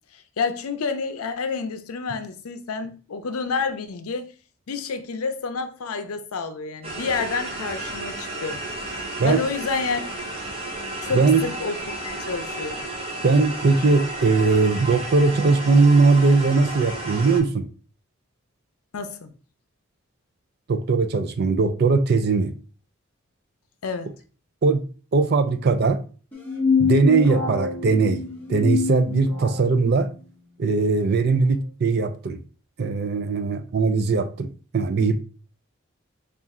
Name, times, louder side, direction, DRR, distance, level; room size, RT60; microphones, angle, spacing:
voice 1, 0.1-4.3 4.7-8.6 9.0-10.3 11.0-12.9 18.9-19.3 23.8-24.1, left 4 dB, 90° left, 0.5 m, -29 dB
sound 1, 6.8-17.4, right 2 dB, 25° right, 0.9 m, -33 dB
voice 2, 11.1-11.4 13.2-17.6 20.7-22.5 24.6-24.8 25.1-26.0 26.8-28.2 28.5-30.1 30.6-32.4 32.8-35.2, right 4 dB, 45° right, 0.4 m, -20 dB
sound 2, 26.3-29.7, left 5 dB, 10° left, 0.8 m, -25 dB
4.1 x 2.4 x 3.6 m
head